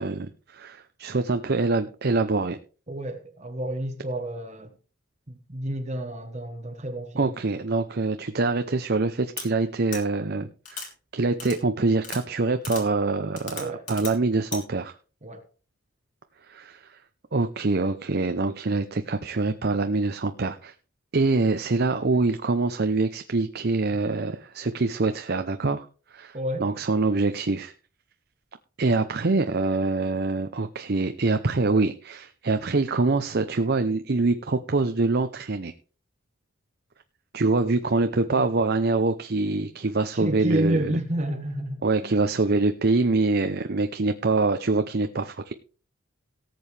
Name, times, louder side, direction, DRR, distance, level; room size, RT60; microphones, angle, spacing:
voice 1, 0.0-2.6 7.2-10.8 11.1-14.9 16.5-17.0 17.3-20.7 21.1-25.9 26.1-27.7 28.8-35.7 37.3-40.9 41.8-45.5, right 3 dB, 50° right, 0.7 m, -25 dB
voice 2, 2.9-4.7 5.3-7.3 13.6-13.9 15.2-15.4 26.3-26.6 38.3-38.4 40.1-42.1, right 1 dB, 30° right, 1.2 m, -30 dB
sound 1, 9.4-9.5 9.9-10.0 10.7-10.9 11.4-11.6 12.0-12.2 12.6-12.8 13.4-14.1 14.5-14.6, left 5 dB, 40° left, 3.4 m, -36 dB
18.0 x 7.7 x 3.3 m
head